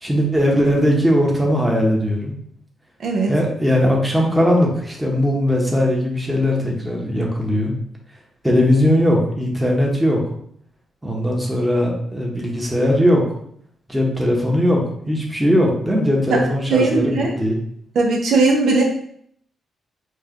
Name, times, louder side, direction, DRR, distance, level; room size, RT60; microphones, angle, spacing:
voice 1, 0.0-2.4 3.3-7.7 8.4-10.2 11.0-13.2 13.9-14.8 15.1-17.6, equal, 5° right, -1 dB, 1.0 m, -19 dB
voice 2, 3.0-3.3 16.3-16.4 16.7-17.3 17.9-18.8, right 3 dB, 70° right, 0 dB, 0.7 m, -18 dB
4.5 x 2.4 x 3.0 m, 0.66 s
cardioid pair, 80°, 0 cm